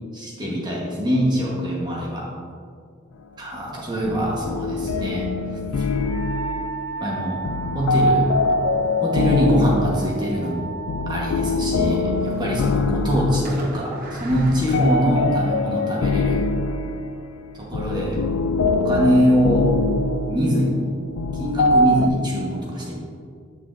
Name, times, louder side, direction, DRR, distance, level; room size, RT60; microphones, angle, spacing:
voice 1, 0.1-2.3 3.4-5.2 5.7-5.8 7.0-7.4 7.7-8.3 9.0-10.7 11.1-16.4 17.5-18.2 18.5-19.6 20.3-20.8 21.3-23.0, equal, 20° right, -4 dB, 1.1 m, -23 dB
sound 1, 4.0-22.1, left 2 dB, 80° left, 0.3 m, -24 dB
Wind instrument woodwind instrument, 6.0-11.6, right 3 dB, 75° right, 0.5 m, -35 dB
Fireworks, 11.8-12.8 13.5-15.7, right 1 dB, 40° right, 0.9 m, -39 dB
8.9 x 6.2 x 2.5 m, 2.2 s
head